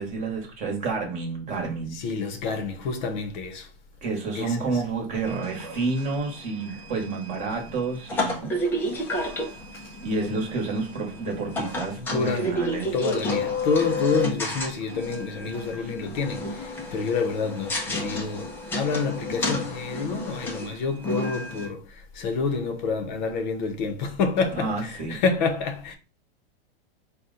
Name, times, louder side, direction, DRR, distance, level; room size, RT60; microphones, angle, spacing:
voice 1, 0.0-2.0 4.0-8.6 9.3-9.5 10.0-12.9 15.8-15.9 24.6-25.2, right 3 dB, 25° right, 1.1 m, -29 dB
voice 2, 1.9-3.7 4.3-4.8 9.7-9.9 10.3-10.4 12.0-12.5 12.9-26.0, left 4 dB, 50° left, 0.7 m, -28 dB
sound 1, 5.2-21.7, left 1 dB, 5° left, 0.3 m, -31 dB
4.2 x 2.2 x 3.8 m
supercardioid pair, 150°, 31 cm